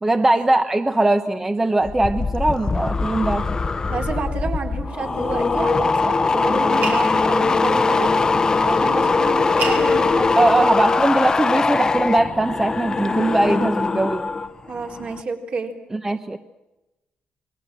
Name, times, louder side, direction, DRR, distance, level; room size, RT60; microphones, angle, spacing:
voice 1, 0.0-3.6 10.4-14.3 15.9-16.4, right 2 dB, 15° right, 8 dB, 0.9 m, -20 dB
sound 1, 1.8-14.5 14.8-15.2, left 4 dB, 25° left, 0.9 m, -21 dB
sound 2, 3.6-11.5, right 4 dB, 70° right, 4.7 m, -38 dB
voice 2, 3.9-8.1 8.6-10.8 14.7-15.8, right 4 dB, 50° right, 3 dB, 4.1 m, -29 dB
29.5 x 21.5 x 7.6 m, 1.0 s
wide cardioid pair, 175°, 3 cm